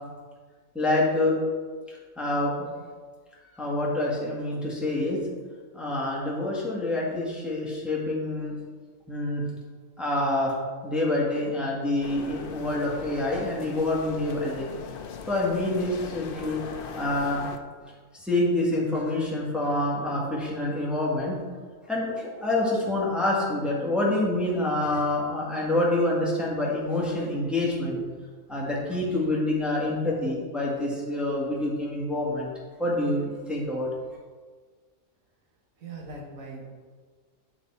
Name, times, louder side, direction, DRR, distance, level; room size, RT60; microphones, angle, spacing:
voice 1, 0.7-1.4 2.2-2.5 3.6-5.2 5.7-8.5 9.1-9.4 10.0-10.6 10.8-14.7 15.3-16.6 17.0-17.4 18.1-21.4 21.9-28.0 28.5-32.5 32.8-33.9, left 1 dB, ahead, -5 dB, 1.5 m, -27 dB
sound 1, 12.0-17.6, left 5 dB, 60° left, 0.6 m, -40 dB
voice 2, 35.8-36.7, right 3 dB, 80° right, 0 dB, 1.6 m, -40 dB
9.7 x 4.0 x 4.2 m, 1.5 s
omnidirectional pair, 1.4 m